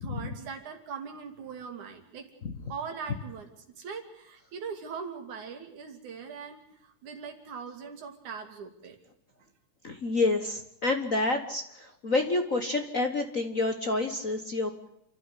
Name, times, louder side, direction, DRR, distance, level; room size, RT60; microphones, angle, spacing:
voice 1, 0.0-2.3 2.7-9.0, right 6 dB, 75° right, 5 dB, 4.0 m, -41 dB
voice 2, 9.8-14.9, left 2 dB, 55° left, 6 dB, 0.9 m, -28 dB
29.0 x 12.0 x 9.9 m, 0.78 s
omnidirectional pair, 3.5 m